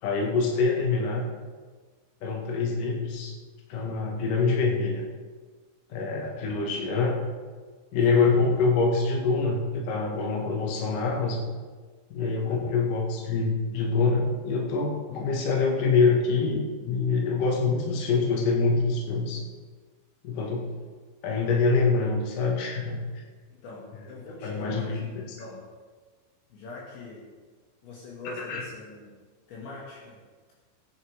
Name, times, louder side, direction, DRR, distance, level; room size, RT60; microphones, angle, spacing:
voice 1, 0.0-1.2 2.2-3.4 3.7-5.0 5.9-7.2 7.9-11.4 12.1-19.4 20.2-20.7 21.2-23.0 24.4-25.4 28.2-28.6, left 4 dB, 55° left, -1 dB, 3.0 m, -25 dB
voice 2, 8.1-8.5 10.9-11.1 12.4-12.8 23.5-25.6 26.5-27.2 27.8-29.1 29.5-30.2, left 3 dB, 70° left, -5 dB, 4.4 m, -43 dB
20.0 x 10.0 x 3.7 m, 1.4 s
omnidirectional pair, 5.5 m